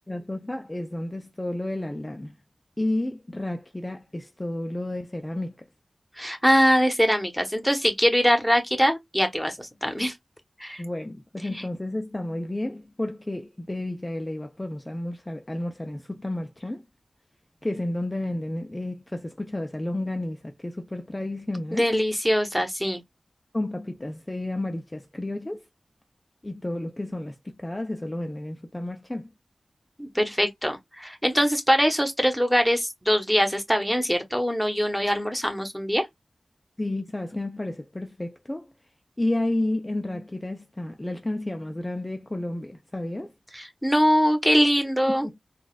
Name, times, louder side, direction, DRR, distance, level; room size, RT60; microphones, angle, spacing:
voice 1, 0.1-2.4 2.8-5.6 10.8-16.9 17.6-21.9 23.5-25.6 26.4-29.3 36.8-38.7 39.2-43.3 45.1-45.3, left 1 dB, 25° left, 0.5 m, -31 dB
voice 2, 6.2-10.2 10.6-10.8 21.7-23.0 30.0-36.0 43.5-45.3, equal, ahead, 1.1 m, -23 dB
3.9 x 2.4 x 2.3 m
cardioid pair, 45°, 0 cm